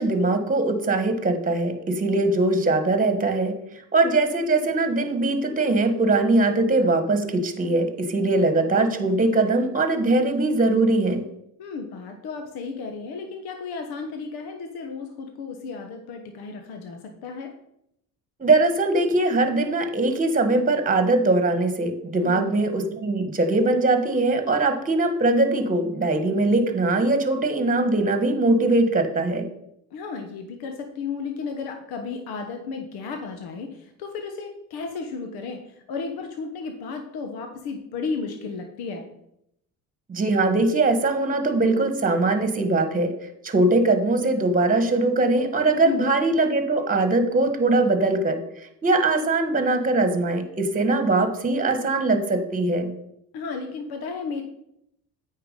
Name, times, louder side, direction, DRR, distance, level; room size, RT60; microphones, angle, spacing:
voice 1, 0.0-3.5 3.9-11.3 18.4-29.5 40.1-43.1 43.4-48.4 48.8-52.9, right 2 dB, 20° right, 8 dB, 1.3 m, -21 dB
voice 2, 11.6-17.5 22.2-22.7 29.9-39.0 45.8-46.1 53.3-54.4, left 4 dB, 75° left, 5 dB, 1.2 m, -33 dB
8.5 x 4.6 x 5.4 m, 0.77 s
cardioid pair, 95°, 38 cm